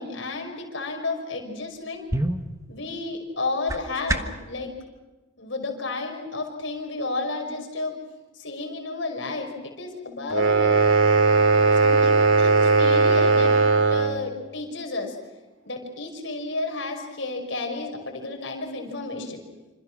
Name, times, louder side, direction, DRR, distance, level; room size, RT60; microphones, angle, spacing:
voice 1, 0.0-2.0 2.7-4.7 5.4-7.9 8.3-10.7 11.7-13.5 13.9-15.2 15.6-19.4, left 3 dB, 70° left, 3 dB, 5.7 m, -32 dB
sound 1, 1.6-4.5, right 1 dB, 15° right, 1.3 m, -30 dB
sound 2, 10.3-14.2, right 4 dB, 75° right, 2.3 m, -18 dB
27.0 x 26.5 x 6.3 m, 1.2 s
head